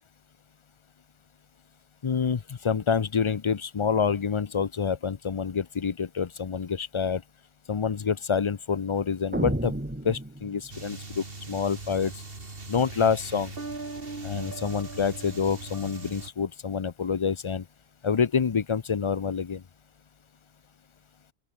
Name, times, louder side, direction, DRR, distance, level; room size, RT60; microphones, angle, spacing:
voice 1, 2.0-7.2 7.7-9.7 10.0-12.2 12.7-13.5 14.2-17.7 18.0-19.6, left 6 dB, 35° left, 0.5 m, -27 dB
sound 1, 9.3-10.9, right 1 dB, 10° right, 1.5 m, -31 dB
sound 2, 10.7-16.3, right 3 dB, 60° right, 2.9 m, -40 dB
open air
omnidirectional pair, 1.1 m